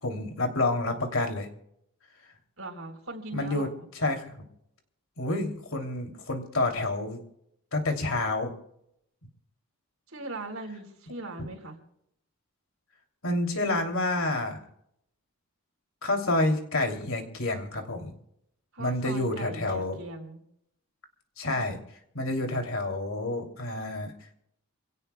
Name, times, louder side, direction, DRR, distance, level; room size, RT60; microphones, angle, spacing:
voice 1, 0.0-1.5 3.3-3.7 3.9-4.3 5.2-7.2 7.7-8.5 13.2-14.6 16.0-18.1 18.8-20.0 21.4-21.8 22.1-24.1, left 2 dB, 70° left, 3 dB, 3.0 m, -28 dB
voice 2, 2.6-3.9 10.1-11.8 18.7-20.4, right 2 dB, 75° right, 3 dB, 4.0 m, -40 dB
27.5 x 17.5 x 2.3 m, 0.75 s
head